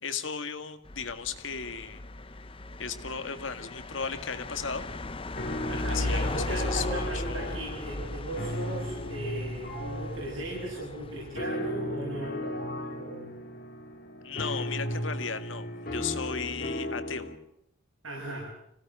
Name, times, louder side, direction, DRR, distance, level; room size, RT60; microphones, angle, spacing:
voice 1, 0.0-2.0 2.8-4.9 5.7-7.7 14.2-17.3, left 6 dB, 70° left, 9 dB, 2.0 m, -36 dB
sound 1, 0.9-11.4, left 2 dB, 25° left, 0.8 m, -37 dB
sound 2, 5.4-17.4, equal, 45° left, 3.6 m, -36 dB
voice 2, 5.7-13.3 18.0-18.5, right 1 dB, 85° right, -2 dB, 7.2 m, -37 dB
26.0 x 17.0 x 7.6 m, 0.79 s
head